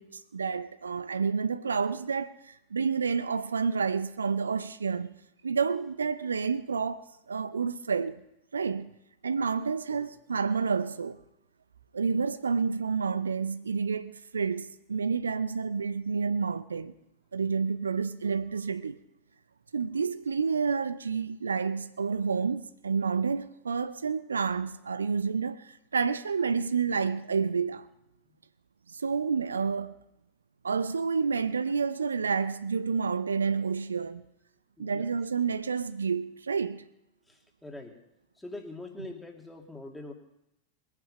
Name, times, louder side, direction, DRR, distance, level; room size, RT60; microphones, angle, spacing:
voice 1, 0.0-5.2 5.4-7.0 7.3-8.2 8.5-8.9 9.2-11.2 11.9-16.9 17.3-19.0 19.7-27.9 28.9-30.0 30.6-34.3 34.8-36.8, right 5 dB, 75° right, 0.6 m, -29 dB
voice 2, 34.8-35.1 37.3-38.0 38.4-40.1, left 2 dB, 5° left, 2.5 m, -43 dB
21.5 x 9.8 x 5.6 m
figure-of-eight pair, 90°, 0 cm